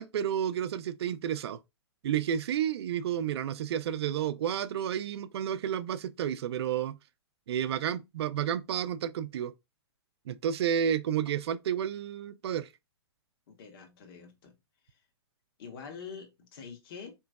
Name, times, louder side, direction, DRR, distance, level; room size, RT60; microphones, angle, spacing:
voice 1, 0.0-1.6 2.0-7.0 7.5-9.5 10.3-12.7, right 9 dB, 65° right, 0.4 m, -31 dB
voice 2, 13.5-14.5 15.6-17.1, left 6 dB, 55° left, 1.2 m, -45 dB
4.3 x 3.0 x 2.3 m
hypercardioid pair, 135°, 14 cm